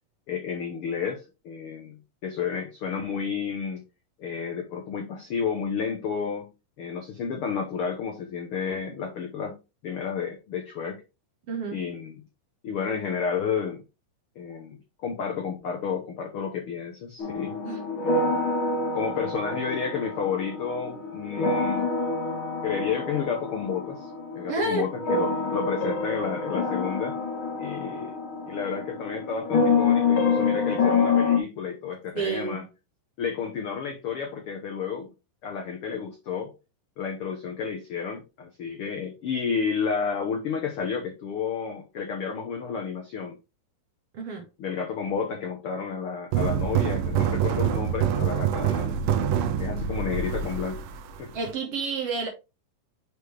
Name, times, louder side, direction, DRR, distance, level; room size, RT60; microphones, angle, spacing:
voice 1, 0.3-2.0 2.2-3.8 4.2-6.5 6.8-11.0 11.7-12.2 12.6-13.8 14.4-17.6 18.0-18.3 18.9-21.9 22.6-27.1 27.6-28.1 28.5-32.6 33.2-35.1 35.4-36.5 37.0-43.4 44.6-49.0 49.6-50.8 51.2-51.3, left 6 dB, 85° left, 1.2 m, -31 dB
voice 2, 11.5-11.8 17.6-17.8 24.5-24.9 32.1-32.6 44.1-44.5 51.3-52.3, right 4 dB, 60° right, 1.7 m, -29 dB
sound 1, 17.2-31.4, left 4 dB, 65° left, 1.3 m, -27 dB
sound 2, 46.3-51.5, right 9 dB, 90° right, 2.4 m, -26 dB
6.4 x 4.9 x 3.3 m
omnidirectional pair, 3.9 m